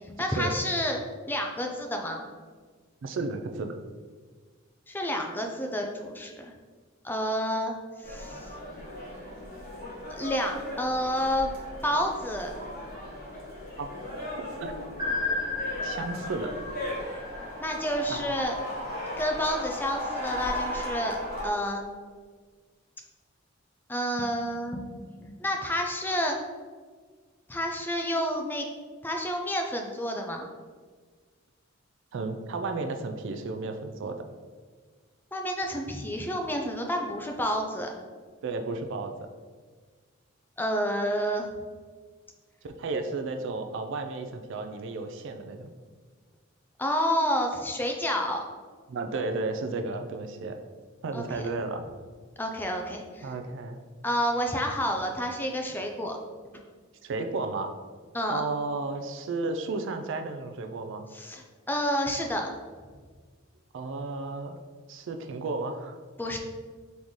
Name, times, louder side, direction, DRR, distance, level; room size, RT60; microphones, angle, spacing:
voice 1, 0.1-1.0 1.3-2.3 4.9-6.5 7.0-7.8 8.0-8.5 10.1-11.5 11.8-12.5 17.6-18.6 19.2-21.2 21.4-21.8 23.9-24.9 25.2-26.4 27.5-28.7 29.0-30.5 35.3-37.9 40.6-41.5 46.8-48.4 51.1-51.5 52.4-53.3 54.0-56.2 58.1-58.4 61.1-62.5 66.2-66.4, equal, 10° left, 2 dB, 0.4 m, -29 dB
voice 2, 3.0-3.8 13.8-13.9 14.6-14.7 15.8-16.5 18.1-18.2 32.1-34.2 38.4-39.1 42.6-45.7 48.9-50.6 51.0-51.8 53.2-53.8 57.0-57.7 58.3-61.1 63.7-64.6 64.9-66.0, right 3 dB, 65° right, 6 dB, 0.4 m, -33 dB
sound 1, 8.0-21.5, left 1 dB, 45° left, 1.2 m, -37 dB
sound 2, 15.0-17.9, left 3 dB, 20° right, 1.3 m, -33 dB
4.0 x 3.6 x 3.1 m, 1.5 s
head